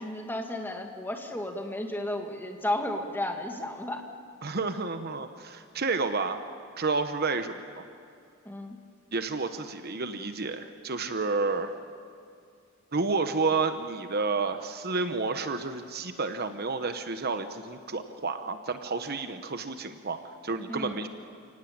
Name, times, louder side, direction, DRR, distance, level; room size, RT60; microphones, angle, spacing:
voice 1, 0.0-4.0 8.5-8.8 20.7-20.9, left 1 dB, 10° left, 3 dB, 2.2 m, -33 dB
voice 2, 4.4-6.4 6.8-7.9 9.1-11.7 12.9-21.1, right 4 dB, 45° right, 9 dB, 1.1 m, -30 dB
29.5 x 18.5 x 8.8 m, 2.4 s
head